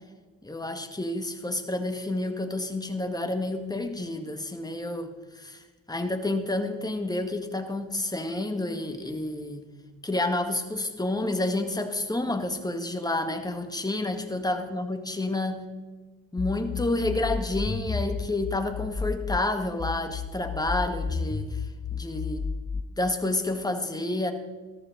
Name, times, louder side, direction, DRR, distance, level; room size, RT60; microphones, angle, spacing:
voice 1, 0.4-5.6 5.9-9.6 10.0-15.6 16.3-21.6 21.9-22.4 22.7-24.3, left 2 dB, 10° left, 6 dB, 1.7 m, -29 dB
sound 1, 16.4-19.4 19.8-22.8, left 5 dB, 30° left, 0.9 m, -32 dB
14.0 x 13.0 x 4.0 m, 1.3 s
supercardioid pair, 55°, 33 cm